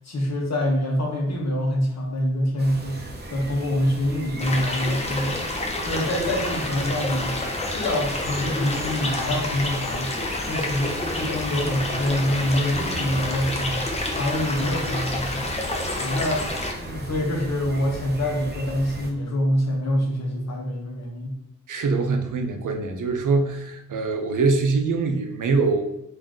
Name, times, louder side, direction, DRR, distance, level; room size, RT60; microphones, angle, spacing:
voice 1, 0.0-3.0 3.3-5.4 5.8-7.4 7.7-10.1 10.5-15.5 16.0-16.5 16.8-21.3, left 1 dB, 55° left, 0 dB, 0.9 m, -25 dB
sound 1, 2.6-19.1, right 1 dB, 35° right, 0.6 m, -37 dB
sound 2, 4.4-16.7, left 2 dB, 20° left, 0.5 m, -29 dB
voice 2, 21.7-25.8, right 4 dB, 75° right, 5 dB, 0.6 m, -23 dB
3.7 x 2.6 x 3.6 m, 0.90 s
wide cardioid pair, 160°, 31 cm